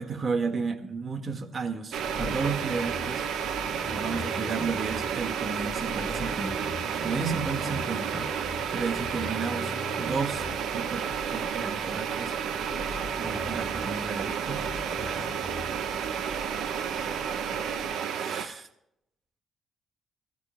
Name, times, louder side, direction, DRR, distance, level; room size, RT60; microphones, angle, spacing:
voice 1, 0.0-3.2 3.9-6.7 7.0-8.3 8.7-9.7 10.0-10.4 10.7-12.3 13.2-14.6 15.0-15.3 18.1-18.7, right 5 dB, 40° right, 7 dB, 1.7 m, -33 dB
sound 1, 1.9-18.5, right 7 dB, 80° right, 1.0 m, -31 dB
sound 2, 2.0-17.9, left 4 dB, 35° left, 1.4 m, -42 dB
21.0 x 13.0 x 2.2 m, 0.78 s
cardioid pair, 90°, 0 cm